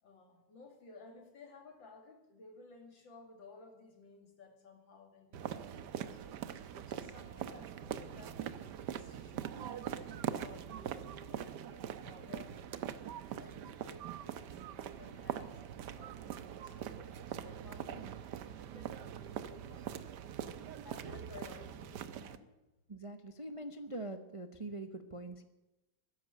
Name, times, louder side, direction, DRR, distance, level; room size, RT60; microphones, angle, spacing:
voice 1, 0.0-6.2 6.7-8.4 8.9-12.8 13.3-18.1 18.6-22.5, left 3 dB, 85° left, 4 dB, 3.4 m, -56 dB
sound 1, 5.3-22.4, right 9 dB, 70° right, 1.4 m, -43 dB
voice 2, 22.9-25.4, right 2 dB, 25° right, 8 dB, 0.7 m, -44 dB
13.5 x 11.0 x 8.9 m, 1.0 s
omnidirectional pair, 2.0 m